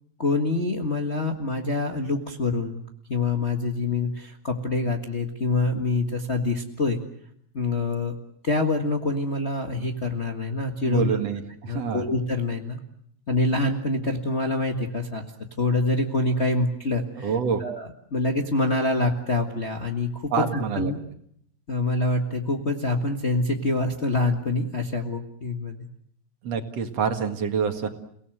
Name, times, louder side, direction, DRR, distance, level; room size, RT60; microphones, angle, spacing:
voice 1, 0.2-2.8 3.1-7.0 7.5-8.1 8.4-11.2 11.7-12.8 13.3-15.3 15.6-17.3 17.6-21.0 21.7-25.8, left 2 dB, 30° left, 3 dB, 1.4 m, -26 dB
voice 2, 10.9-12.0 17.2-17.6 20.3-20.9 26.4-27.9, right 6 dB, 60° right, 6 dB, 2.9 m, -26 dB
29.5 x 18.5 x 7.9 m, 0.70 s
omnidirectional pair, 3.3 m